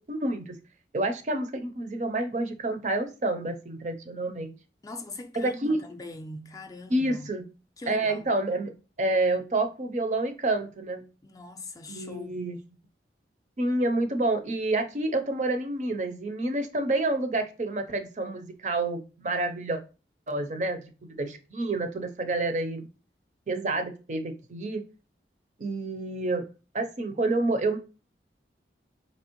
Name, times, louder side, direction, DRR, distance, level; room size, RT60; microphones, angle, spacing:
voice 1, 0.1-0.6 0.9-4.5 5.4-5.8 6.9-7.4 7.9-11.0 11.9-12.6 13.6-19.8 20.3-22.9 23.5-24.8 25.6-26.4 26.7-27.8, right 2 dB, 40° right, 0.5 m, -28 dB
voice 2, 4.8-7.3 7.8-8.3 11.2-12.4, left 2 dB, 20° left, 0.3 m, -41 dB
4.3 x 2.8 x 2.9 m
head